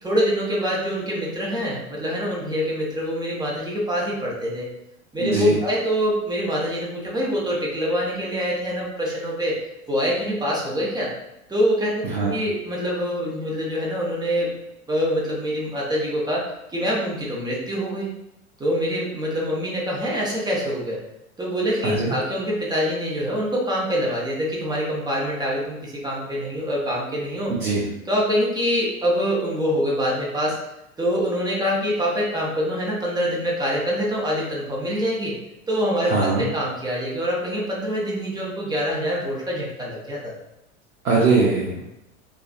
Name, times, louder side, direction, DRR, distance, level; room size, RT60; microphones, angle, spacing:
voice 1, 0.0-4.7 5.1-9.6 9.9-11.1 11.5-14.5 14.9-16.4 16.7-18.1 18.6-21.0 21.4-27.5 28.1-30.6 31.0-35.3 35.7-40.3, equal, 10° right, -4 dB, 0.5 m, -25 dB
voice 2, 5.2-5.5 12.1-12.3 21.8-22.1 27.5-27.8 36.0-36.4 41.0-41.8, right 3 dB, 90° right, -4 dB, 0.6 m, -21 dB
2.4 x 2.3 x 2.3 m, 0.89 s
hypercardioid pair, 85°, 42 cm